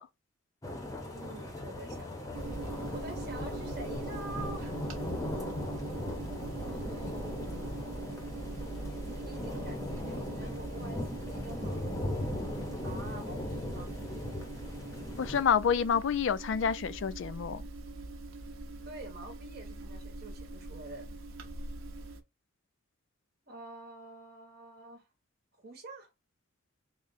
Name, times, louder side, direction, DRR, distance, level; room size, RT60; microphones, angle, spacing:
sound 1, 0.6-15.4, left 1 dB, 15° left, 0.7 m, -38 dB
voice 1, 1.1-4.8 6.6-7.9 9.2-12.0 12.8-13.9 18.8-21.1 23.5-25.1 25.6-26.1, right 2 dB, 50° right, 0.8 m, -47 dB
sound 2, 2.3-22.2, right 2 dB, 80° right, 0.7 m, -42 dB
voice 2, 15.2-17.6, left 7 dB, 60° left, 0.3 m, -28 dB
3.6 x 2.2 x 4.0 m
head